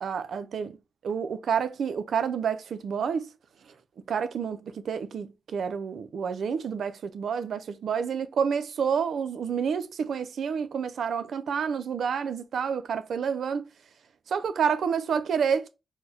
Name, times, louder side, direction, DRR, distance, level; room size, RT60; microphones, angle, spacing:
voice 1, 0.0-0.7 1.0-3.3 4.1-13.7 14.3-15.7, right 7 dB, 85° right, 0.4 m, -29 dB
4.4 x 2.1 x 2.7 m
cardioid pair, 55°, 0 cm